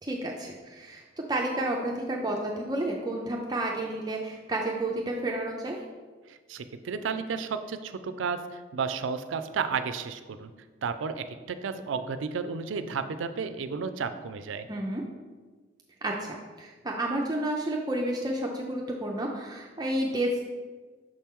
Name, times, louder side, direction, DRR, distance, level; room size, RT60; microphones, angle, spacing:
voice 1, 0.0-5.8 14.7-15.0 16.0-20.5, right 1 dB, 20° right, 0 dB, 0.4 m, -31 dB
voice 2, 6.3-10.5 10.8-14.7, right 5 dB, 80° right, 10 dB, 0.4 m, -32 dB
6.4 x 4.4 x 3.6 m, 1.4 s
head